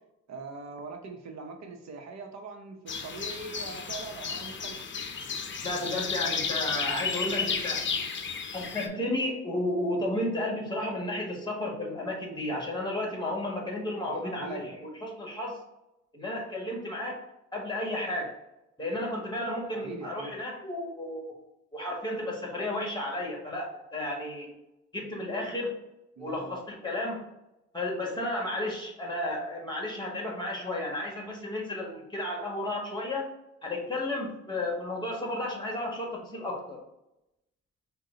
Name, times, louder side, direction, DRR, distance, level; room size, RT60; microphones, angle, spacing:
voice 1, 0.3-4.8 14.2-14.7 19.7-20.3 26.2-26.6, right 3 dB, 60° right, 4 dB, 0.8 m, -42 dB
sound 1, 2.9-8.9, left 5 dB, 40° left, 0.7 m, -33 dB
voice 2, 5.6-7.9 8.5-15.6 16.1-17.2 17.5-18.4 18.8-21.4 21.7-24.5 24.9-25.7 26.2-27.2 27.7-33.3 33.6-36.8, left 1 dB, 15° left, -1 dB, 1.6 m, -33 dB
5.6 x 2.3 x 3.8 m, 0.89 s
cardioid pair, 90°, 30 cm